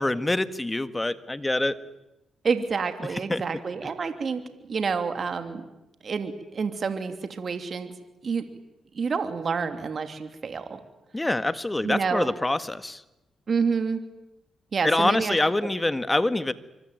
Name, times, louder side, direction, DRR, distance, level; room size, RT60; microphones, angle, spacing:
voice 1, 0.0-1.8 3.3-3.4 11.1-13.0 14.8-16.5, left 2 dB, 20° left, 12 dB, 1.7 m, -25 dB
voice 2, 2.4-5.6 6.0-7.9 8.2-8.5 8.9-10.8 11.8-12.3 13.5-14.0 14.7-15.4, right 5 dB, 55° right, 8 dB, 3.0 m, -28 dB
25.5 x 24.0 x 9.3 m, 0.93 s
supercardioid pair, 60°, 0 cm